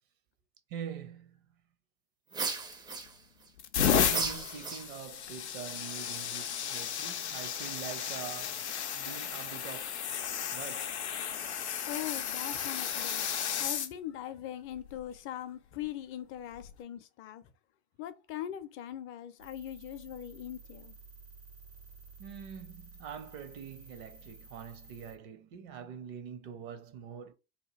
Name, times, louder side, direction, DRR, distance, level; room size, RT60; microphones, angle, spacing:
voice 1, 0.7-1.4 3.8-8.7 8.9-9.9 10.5-11.0 22.2-27.3, right 8 dB, 55° right, 0.7 m, -44 dB
sound 1, 2.3-3.5 4.1-5.2, right 4 dB, 15° right, 0.4 m, -36 dB
sound 2, 2.7-3.1 3.6-13.9 14.8-15.0 16.5-16.7, left 8 dB, 90° left, 0.5 m, -33 dB
voice 2, 11.9-13.3 13.6-17.5 18.0-21.0, left 11 dB, 40° left, 0.5 m, -41 dB
sound 3, 19.4-25.2, right 4 dB, 90° right, 1.2 m, -53 dB
2.9 x 2.2 x 3.1 m
hypercardioid pair, 80°, 32 cm